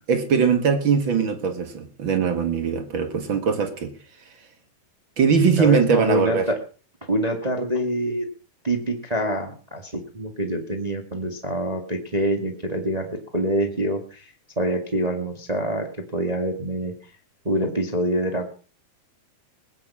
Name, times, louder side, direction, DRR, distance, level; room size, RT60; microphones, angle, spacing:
voice 1, 0.1-3.9 5.2-6.4, right 6 dB, 50° right, 1.5 m, -21 dB
voice 2, 5.2-6.5 7.1-8.2 8.6-14.3 14.5-15.8 16.1-16.9 17.4-18.5, right 1 dB, 30° right, 0.6 m, -25 dB
21.0 x 9.3 x 5.6 m
omnidirectional pair, 4.6 m